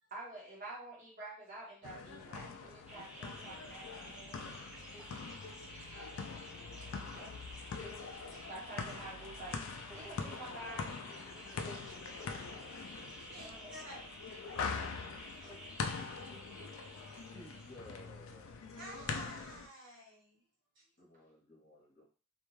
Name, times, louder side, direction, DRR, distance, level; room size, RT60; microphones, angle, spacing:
voice 1, 0.1-4.6 5.7-6.2 8.5-11.0 13.4-13.7, right 2 dB, 35° right, -3 dB, 0.9 m, -49 dB
sound 1, 1.8-19.7, left 5 dB, 70° left, 0.4 m, -43 dB
sound 2, 2.9-18.0, equal, 5° right, 0.4 m, -52 dB
voice 2, 4.8-5.9 6.6-8.5 11.6-14.6 15.2-16.4 16.8-17.0 18.7-20.4 20.7-20.9, right 1 dB, 60° right, -3 dB, 1.2 m, -56 dB
voice 3, 17.3-18.8 21.0-22.1, left 1 dB, 40° left, -3 dB, 0.9 m, -56 dB
2.5 x 2.2 x 3.0 m, 0.38 s
head